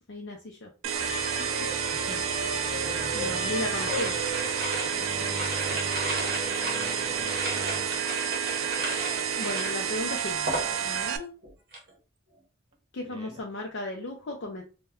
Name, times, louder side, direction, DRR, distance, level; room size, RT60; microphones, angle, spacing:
voice 1, 0.1-0.9 1.4-1.5 2.7-2.8 3.1-4.2 7.8-8.1 9.3-10.6 10.8-11.3 12.9-14.6, left 2 dB, 60° left, 0.5 m, -36 dB
sound 1, 0.8-11.2, right 8 dB, 90° right, 0.3 m, -30 dB
sound 2, 0.9-8.1, equal, ahead, 0.8 m, -36 dB
voice 2, 1.9-2.3 2.8-4.2 4.7-7.6 13.0-13.5, right 2 dB, 25° right, 0.4 m, -46 dB
sound 3, 3.7-11.1 11.4-11.9, right 1 dB, 50° right, 0.7 m, -35 dB
2.1 x 2.1 x 3.5 m
head